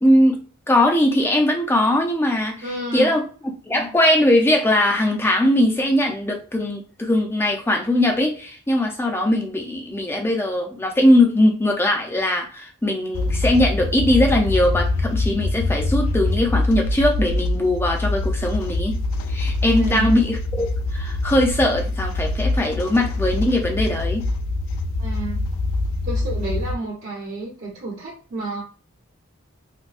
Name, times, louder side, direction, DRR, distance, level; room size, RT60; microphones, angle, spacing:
voice 1, 0.0-2.5 2.9-3.3 3.7-18.9 19.3-20.7 20.9-24.3, left 1 dB, 10° left, 1 dB, 0.5 m, -20 dB
voice 2, 2.6-3.1 19.8-20.1 25.0-25.4 26.0-28.6, right 2 dB, 55° right, -8 dB, 1.1 m, -30 dB
sound 1, 13.1-26.8, left 2 dB, 75° left, 0.3 m, -24 dB
3.4 x 2.2 x 2.5 m, 0.38 s
head